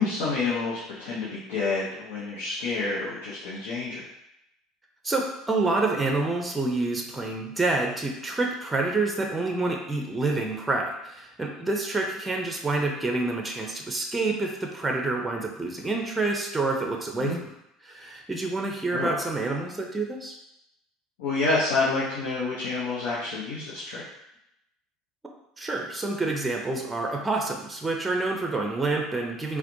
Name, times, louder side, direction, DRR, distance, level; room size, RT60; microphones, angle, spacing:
voice 1, 0.0-4.0 17.2-17.4 18.9-19.1 21.2-24.0, left 3 dB, 70° left, -7 dB, 0.8 m, -28 dB
voice 2, 5.0-17.4 17.8-20.4 25.6-29.6, right 3 dB, 15° right, 1 dB, 0.6 m, -28 dB
4.2 x 2.2 x 2.7 m, 0.82 s
hypercardioid pair, 70°, 0 cm